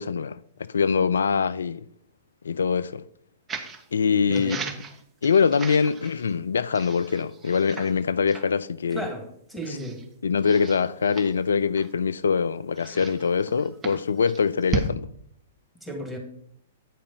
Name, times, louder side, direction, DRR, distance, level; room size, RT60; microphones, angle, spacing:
voice 1, 0.0-1.8 2.4-3.0 3.9-4.6 5.2-9.0 10.2-15.1, left 6 dB, 75° left, 0.3 m, -23 dB
sound 1, 3.5-3.8 4.3-6.3 6.7-8.0 8.3-8.5 9.0-9.1 9.6-10.1 10.4-12.1 12.8-14.9, right 4 dB, 20° right, 1.3 m, -36 dB
voice 2, 4.3-4.7 8.9-10.1 15.8-16.2, right 1 dB, ahead, 2.4 m, -34 dB
9.2 x 4.8 x 5.6 m
figure-of-eight pair, 110°, 0 cm